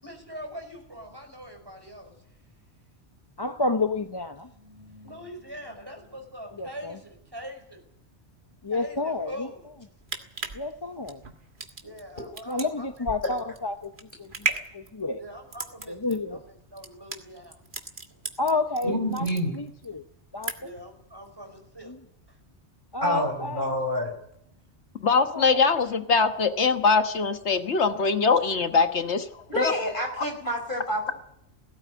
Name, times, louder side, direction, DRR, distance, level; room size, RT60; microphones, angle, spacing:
voice 1, 0.0-2.4 4.4-7.8 8.7-9.7 11.8-13.5 15.2-17.6 18.1-18.2 20.6-21.9 22.3-22.4, equal, 20° right, 3 dB, 5.2 m, -43 dB
voice 2, 3.4-4.5 6.6-6.9 8.6-9.3 10.5-11.2 12.5-13.8 14.2-14.5 14.7-15.2 15.9-16.4 18.4-19.3 19.5-19.7 19.9-20.0 20.3-20.5 22.9-23.6 25.1-25.6, left 3 dB, 25° left, 8 dB, 0.7 m, -29 dB
sound 1, 9.8-18.8 19.1-19.9 20.2-20.9 21.2-21.3, right 4 dB, 50° right, 2.0 m, -35 dB
voice 3, 18.8-19.5 23.0-24.1 29.5-31.2, left 1 dB, 45° left, 4 dB, 5.2 m, -28 dB
voice 4, 25.0-29.3 29.6-29.7, left 5 dB, 80° left, 8 dB, 1.6 m, -22 dB
18.0 x 16.5 x 9.4 m, 0.76 s
omnidirectional pair, 1.1 m